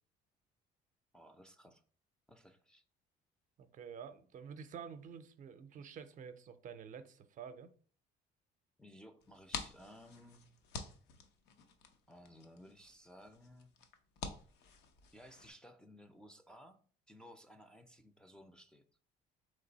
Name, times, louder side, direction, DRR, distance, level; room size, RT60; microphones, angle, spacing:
voice 1, 1.1-1.8 2.3-2.8 8.8-10.5 12.1-13.7 15.1-18.8, equal, 5° left, 0.4 m, -58 dB
voice 2, 3.6-7.7, right 7 dB, 50° right, 0.5 m, -49 dB
sound 1, 9.2-15.5, left 5 dB, 85° left, 0.7 m, -49 dB
3.9 x 3.3 x 3.9 m
cardioid pair, 110°, 17 cm